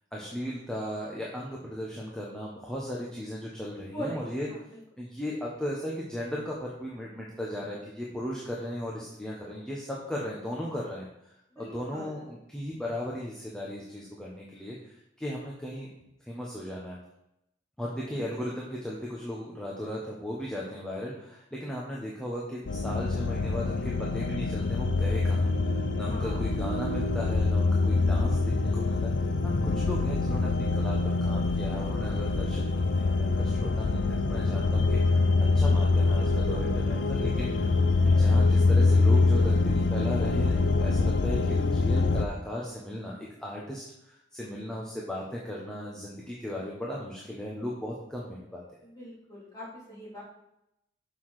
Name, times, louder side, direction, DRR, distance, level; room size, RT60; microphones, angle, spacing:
voice 1, 0.1-4.5 5.0-11.3 11.6-15.9 16.3-17.0 17.8-25.7 26.0-35.3 35.5-37.7 38.0-43.1 43.4-48.6, equal, 5° left, -5 dB, 1.1 m, -36 dB
voice 2, 3.9-4.4 11.5-12.2 18.1-18.2 25.9-26.4 38.0-38.5 48.8-50.2, equal, 20° left, -6 dB, 3.2 m, -41 dB
sound 1, 22.7-42.3, left 3 dB, 80° left, 0.6 m, -25 dB
6.8 x 5.9 x 4.9 m, 0.83 s
head